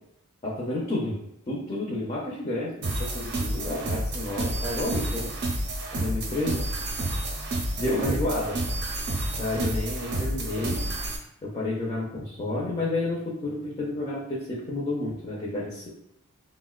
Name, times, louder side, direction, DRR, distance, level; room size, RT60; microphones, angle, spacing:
voice 1, 0.4-1.2 1.5-5.3 5.9-6.6 7.8-8.6 9.3-10.8 11.4-15.9, left 2 dB, 25° left, -5 dB, 0.4 m, -30 dB
sound 1, 2.8-11.2, right 1 dB, 50° right, 0.5 m, -30 dB
4.1 x 2.0 x 2.3 m, 0.76 s
head